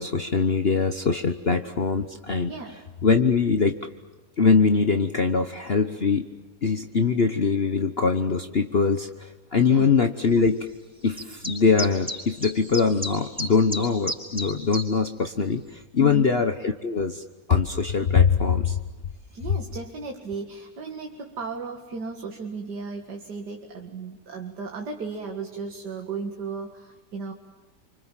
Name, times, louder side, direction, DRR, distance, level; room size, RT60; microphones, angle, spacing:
voice 1, 0.0-2.5 3.0-3.7 4.4-6.2 6.6-10.7 11.0-17.2 17.5-18.8, left 5 dB, 40° left, 7 dB, 1.2 m, -22 dB
voice 2, 2.5-2.8 9.7-9.9 16.0-16.4 19.3-27.3, right 4 dB, 80° right, 3 dB, 2.6 m, -35 dB
sound 1, 11.2-14.9, left 1 dB, 5° right, 4.8 m, -32 dB
28.5 x 26.0 x 7.4 m, 1.2 s
omnidirectional pair, 1.8 m